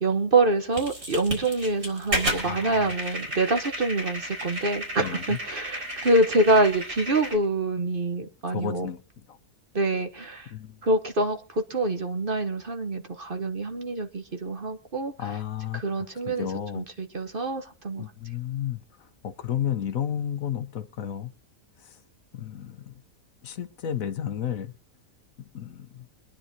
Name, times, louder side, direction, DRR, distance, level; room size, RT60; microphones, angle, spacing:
voice 1, 0.0-8.9 9.7-10.5 10.8-15.1 15.7-16.5 16.7-18.0, right 2 dB, 40° right, 6 dB, 1.2 m, -26 dB
sound 1, 0.7-7.4, right 1 dB, 65° right, 4.4 m, -33 dB
voice 2, 2.4-2.9 5.0-5.4 8.5-9.0 9.3-9.4 10.5-10.8 15.2-16.9 18.0-21.3 21.8-22.0 22.3-22.9 23.4-24.7 25.4-26.1, left 9 dB, 65° left, 11 dB, 1.2 m, -33 dB
24.5 x 10.0 x 2.8 m, 0.34 s
omnidirectional pair, 1.6 m